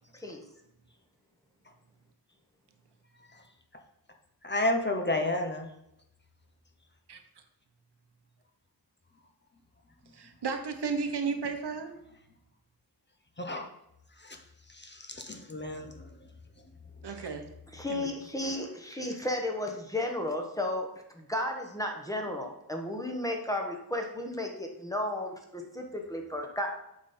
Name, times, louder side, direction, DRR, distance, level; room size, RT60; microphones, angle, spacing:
voice 1, 4.4-5.7 10.0-10.1 13.4-13.7 14.1-16.3 17.1-17.2, left 1 dB, 25° left, 4 dB, 0.9 m, -33 dB
voice 2, 10.1-11.9 17.0-17.4 17.9-18.1, right 5 dB, 80° right, 6 dB, 1.1 m, -33 dB
voice 3, 17.7-20.9 21.1-26.7, left 1 dB, 10° left, 2 dB, 1.2 m, -33 dB
8.5 x 5.4 x 4.3 m, 0.82 s
wide cardioid pair, 130°, 40 cm